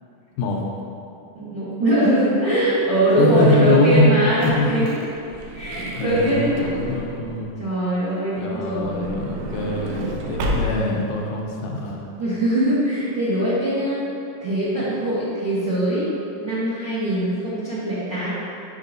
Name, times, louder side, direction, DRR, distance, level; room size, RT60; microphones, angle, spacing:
voice 1, 1.3-5.0 5.5-6.9 7.6-9.1 10.7-11.0 11.5-11.9 12.2-14.0 14.4-16.1 16.4-18.3, right 1 dB, 60° right, -12 dB, 1.2 m, -22 dB
voice 2, 3.2-4.1 4.4-4.8 5.8-7.6 8.4-12.0, left 3 dB, 80° left, -1 dB, 2.1 m, -23 dB
Truck / Door, 4.0-7.5 8.5-11.1 11.8-11.9 12.1-12.2, right 1 dB, 90° right, 2.3 m, -31 dB
7.3 x 5.6 x 2.6 m, 2.6 s
omnidirectional pair, 3.7 m